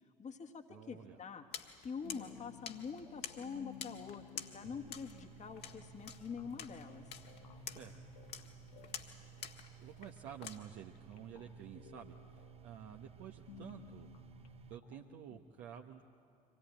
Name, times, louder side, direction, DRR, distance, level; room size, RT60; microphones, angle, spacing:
voice 1, 0.2-1.4 1.8-7.1, left 6 dB, 35° left, 5 dB, 1.6 m, -45 dB
voice 2, 0.7-1.2 7.7-7.9 9.8-14.1 14.7-16.0, right 9 dB, 60° right, 1 dB, 1.1 m, -51 dB
sound 1, 1.5-10.6, left 8 dB, 50° left, 1.7 m, -50 dB
sound 2, 2.0-15.4, left 7 dB, 70° left, 1.1 m, -57 dB
sound 3, 4.7-14.8, right 11 dB, 30° right, 0.7 m, -57 dB
25.0 x 18.0 x 8.9 m, 2.7 s
figure-of-eight pair, 60°, 21 cm